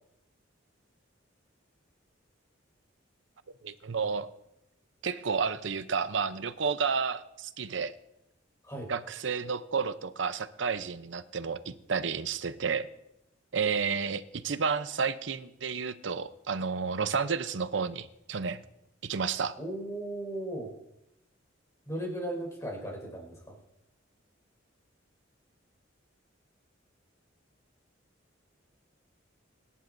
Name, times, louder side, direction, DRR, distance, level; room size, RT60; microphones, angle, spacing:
voice 1, 3.6-4.3 5.0-7.9 8.9-12.9 13.5-18.6 19.0-19.5, right 5 dB, 70° right, 13 dB, 0.7 m, -31 dB
voice 2, 19.6-20.7 21.9-23.6, right 1 dB, 15° left, 0 dB, 5.2 m, -36 dB
24.5 x 11.0 x 2.6 m, 0.84 s
head